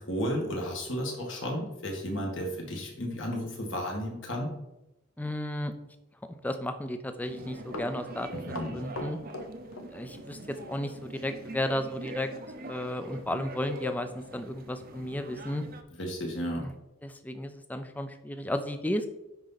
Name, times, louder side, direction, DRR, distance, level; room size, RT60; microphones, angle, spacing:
voice 1, 0.0-4.5 8.3-8.8 16.0-16.7, equal, 60° left, 0 dB, 1.9 m, -33 dB
voice 2, 5.2-5.7 6.4-8.3 8.7-9.2 9.9-12.3 12.6-15.6 16.5-16.7 17.0-19.1, left 1 dB, 10° left, 8 dB, 0.5 m, -33 dB
sound 1, 7.2-15.8, right 2 dB, 45° right, 0.6 m, -43 dB
Run, 7.7-10.3 10.6-10.8 12.0-12.2 12.6-12.7 13.2-13.3 13.6-13.8 14.3-14.4, left 1 dB, 75° left, 1.0 m, -41 dB
10.0 x 4.3 x 4.0 m, 0.91 s
head